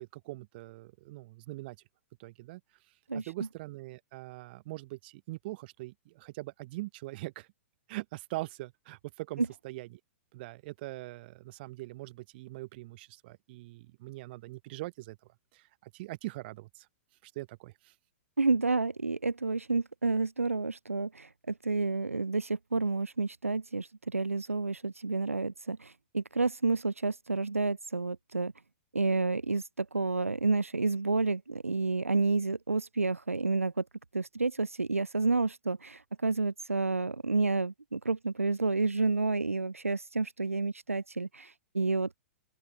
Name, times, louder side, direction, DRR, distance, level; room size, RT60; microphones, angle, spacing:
voice 1, 0.0-1.8 2.2-2.6 3.1-7.5 7.9-9.9 10.3-15.2 15.5-16.9 17.2-17.9, right 20 dB, 45° right, 2.8 m, -42 dB
voice 2, 3.1-3.5 9.4-9.5 18.4-28.5 28.9-33.8 34.1-42.2, right 3 dB, 90° right, 0.7 m, -30 dB
open air
figure-of-eight pair, 110°, 7 cm